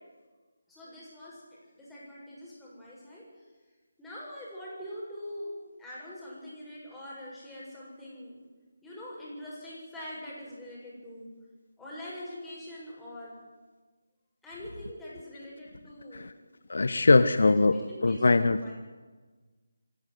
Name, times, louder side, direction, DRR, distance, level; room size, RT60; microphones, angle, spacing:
voice 1, 0.7-3.4 4.0-5.5 5.8-8.4 8.8-11.3 11.8-13.4 14.4-16.3 16.9-18.7, left 1 dB, 5° left, -8 dB, 7.4 m, -44 dB
voice 2, 16.7-18.7, left 3 dB, 60° left, 12 dB, 0.8 m, -22 dB
26.0 x 12.0 x 9.5 m, 1.3 s
figure-of-eight pair, 155°, 0 cm